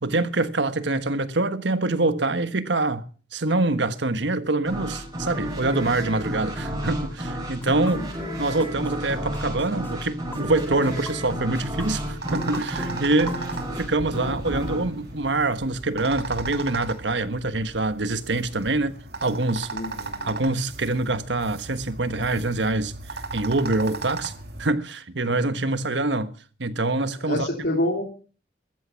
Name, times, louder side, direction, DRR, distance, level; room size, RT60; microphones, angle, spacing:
voice 1, 0.0-3.0 3.3-8.0 8.4-13.4 13.8-19.7 20.2-22.9 23.3-24.3 24.6-26.3 26.6-27.5, right 2 dB, 75° right, 1.4 m, -25 dB
sound 1, 4.7-16.1, equal, 20° right, 5.6 m, -32 dB
sound 2, 7.6-9.0 9.3-13.8, left 1 dB, 10° left, 2.4 m, -39 dB
sound 3, 11.5-24.7, right 3 dB, 60° right, 2.4 m, -37 dB
voice 2, 19.7-20.3 27.2-28.0, left 1 dB, 65° left, 3.4 m, -28 dB
15.0 x 14.0 x 5.8 m
head